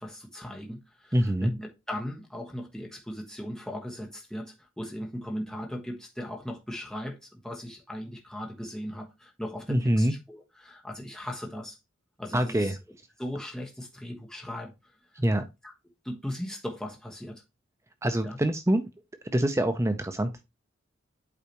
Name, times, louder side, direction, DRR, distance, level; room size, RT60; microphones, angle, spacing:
voice 1, 0.0-11.8 12.2-12.8 13.2-14.7 15.6-15.7 16.0-17.4 18.2-18.4, equal, 5° left, 1.2 m, -38 dB
voice 2, 1.1-1.5 9.7-10.1 12.3-12.8 15.2-15.4 18.0-18.9 19.3-20.4, right 1 dB, 15° right, 0.5 m, -25 dB
8.4 x 4.8 x 2.9 m
head